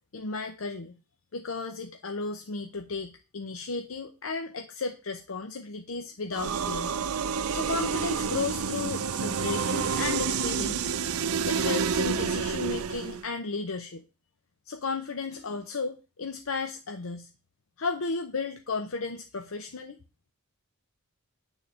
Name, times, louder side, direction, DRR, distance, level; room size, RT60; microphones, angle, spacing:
voice 1, 0.1-0.9 1.3-6.9 7.5-10.9 11.4-14.0 14.7-17.3 17.8-20.0, left 4 dB, 70° left, 6 dB, 0.7 m, -34 dB
sound 1, 6.3-13.3, right 6 dB, 85° right, 0.6 m, -29 dB
8.9 x 4.0 x 7.0 m, 0.33 s
head